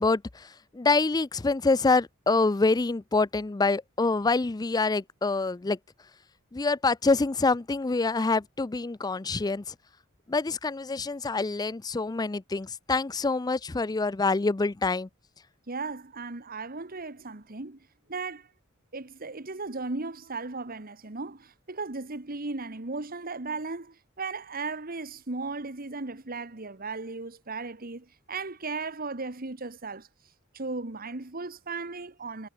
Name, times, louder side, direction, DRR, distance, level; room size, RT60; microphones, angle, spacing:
voice 1, 0.0-5.8 6.5-9.7 10.3-15.1, left 3 dB, 20° left, 0.4 m, -26 dB
voice 2, 15.7-17.8 18.1-18.5 18.9-30.1 30.5-32.5, right 3 dB, 45° right, 1.6 m, -36 dB
head